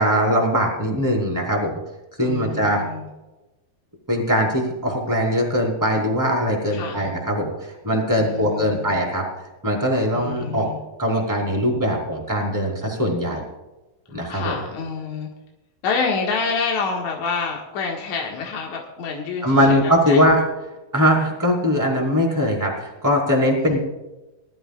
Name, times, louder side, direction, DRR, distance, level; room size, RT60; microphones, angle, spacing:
voice 1, 0.0-1.8 2.2-2.8 4.1-9.2 9.6-10.7 11.0-13.4 14.1-14.5 19.4-20.4 20.9-23.8, equal, 5° right, -1 dB, 3.2 m, -21 dB
voice 2, 2.2-3.1 6.7-7.1 8.2-8.9 10.1-10.8 14.1-15.3 15.8-20.3 23.6-23.8, left 4 dB, 55° left, -1 dB, 2.6 m, -28 dB
21.0 x 13.0 x 2.4 m, 1.0 s
omnidirectional pair, 4.6 m